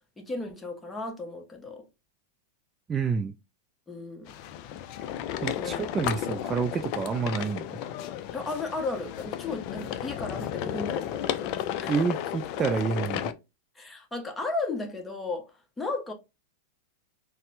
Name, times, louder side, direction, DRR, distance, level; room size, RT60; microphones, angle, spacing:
voice 1, 0.2-1.8 3.9-4.4 5.6-6.1 8.3-11.9 13.8-16.1, left 3 dB, 15° left, 0.9 m, -35 dB
voice 2, 2.9-3.3 5.4-7.8 11.9-13.3, right 5 dB, 25° right, 0.3 m, -28 dB
sound 1, 4.3-13.3, left 11 dB, 50° left, 0.4 m, -33 dB
4.1 x 2.0 x 2.6 m
hypercardioid pair, 105°, 0 cm